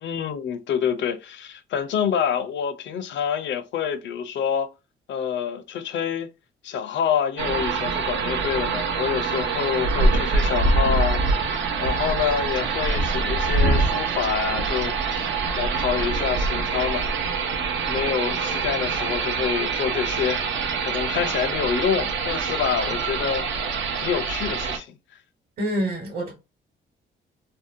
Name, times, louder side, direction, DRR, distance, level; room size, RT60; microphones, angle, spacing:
voice 1, 0.0-4.7 5.1-6.3 6.6-15.3 15.5-17.1 17.8-20.4 20.8-23.5 24.0-24.9, left 8 dB, 70° left, 0.5 m, -27 dB
sound 1, 7.4-24.8, right 4 dB, 70° right, 0.6 m, -25 dB
voice 2, 25.6-26.3, equal, 45° right, 1.1 m, -26 dB
2.7 x 2.1 x 2.6 m
cardioid pair, 90°, 20 cm